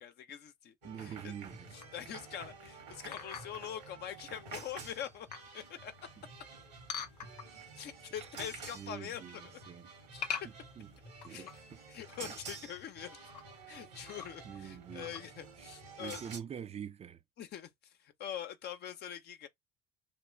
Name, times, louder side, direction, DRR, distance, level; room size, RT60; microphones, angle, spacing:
voice 1, 0.0-1.3 1.9-5.3 5.5-5.9 7.8-9.4 10.1-10.2 11.3-11.5 11.9-13.2 13.7-16.2 17.4-19.5, left 9 dB, 55° left, 0.7 m, -44 dB
voice 2, 0.8-1.8 8.1-8.3 8.7-9.9 10.4-10.9 11.2-11.8 12.2-12.3 14.4-15.2 15.6-17.2, right 8 dB, 30° right, 0.5 m, -46 dB
sound 1, 0.8-16.4, right 4 dB, 85° right, 1.7 m, -50 dB
sound 2, 1.8-2.1 3.1-3.7 4.3-4.4 4.9-5.6 6.9-7.7 8.1-8.7 8.9-9.3 10.2-11.7 12.1-12.2 12.4-12.5 13.1-13.4 14.1-14.6 15.0-15.2, left 7 dB, 90° left, 0.5 m, -43 dB
3.2 x 3.0 x 3.2 m
hypercardioid pair, 55°, 21 cm